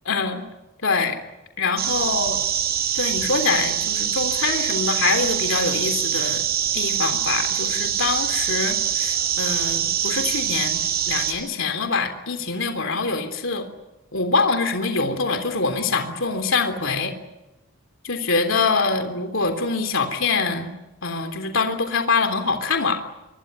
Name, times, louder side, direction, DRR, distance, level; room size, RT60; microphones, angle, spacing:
voice 1, 0.1-0.4 0.8-1.2 1.6-2.4 2.9-6.4 6.7-10.8 11.1-13.7 14.1-17.1 18.0-20.7 21.0-23.0, left 4 dB, 65° left, 6 dB, 3.5 m, -24 dB
sound 1, 1.8-11.3, right 9 dB, 45° right, 7.2 m, -24 dB
26.5 x 22.5 x 9.7 m, 0.96 s
head